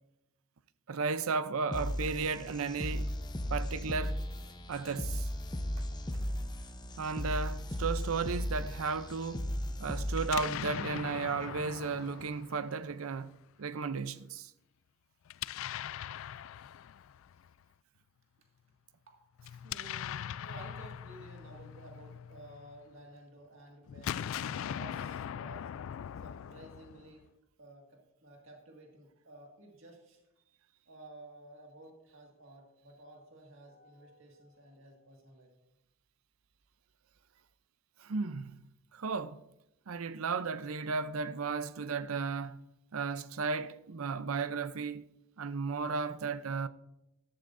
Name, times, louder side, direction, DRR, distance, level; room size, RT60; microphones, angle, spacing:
voice 1, 0.9-3.1 3.5-4.2 4.7-5.3 7.0-9.5 9.8-14.5 38.0-38.5 38.9-39.4 39.9-42.6 42.9-45.1 45.4-46.7, right 4 dB, 85° right, 0.6 m, -34 dB
sound 1, 1.7-10.7, equal, 20° left, 0.8 m, -36 dB
Explosion, 10.1-13.2 15.3-17.5 19.4-22.8 23.9-27.3, left 9 dB, 70° left, 0.3 m, -41 dB
voice 2, 19.5-25.7 26.2-27.3 27.6-30.2 30.9-35.5, right 1 dB, 65° right, 2.0 m, -53 dB
13.5 x 12.5 x 2.6 m
head